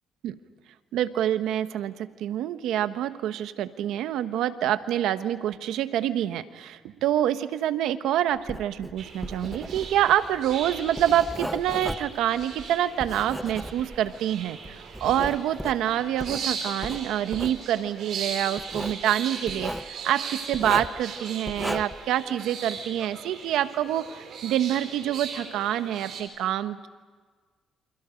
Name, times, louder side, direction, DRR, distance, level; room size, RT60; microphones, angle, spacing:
voice 1, 0.9-26.9, right 11 dB, 85° right, 11 dB, 1.1 m, -27 dB
Writing, 8.4-14.2 14.6-16.4 16.8-17.6 18.6-19.0 19.5-19.9 20.5-21.0 21.5-22.1, equal, ahead, 1.0 m, -35 dB
sound 1, 9.0-26.2, right 6 dB, 70° right, 4.9 m, -38 dB
28.5 x 27.0 x 5.2 m, 1.5 s
cardioid pair, 90°, 0 cm